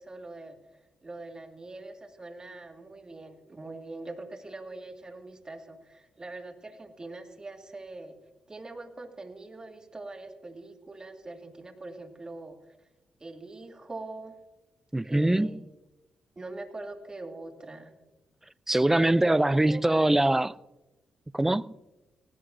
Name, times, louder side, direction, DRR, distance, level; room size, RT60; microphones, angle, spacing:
voice 1, 0.0-8.2 8.5-12.7 13.2-14.4 15.0-15.6 16.4-17.9 18.9-19.4 19.7-20.0, right 2 dB, 30° right, 1.9 m, -43 dB
voice 2, 14.9-15.6 18.7-20.6 21.3-21.8, right 1 dB, 10° right, 0.4 m, -23 dB
18.5 x 17.0 x 2.6 m
supercardioid pair, 60°, 3 cm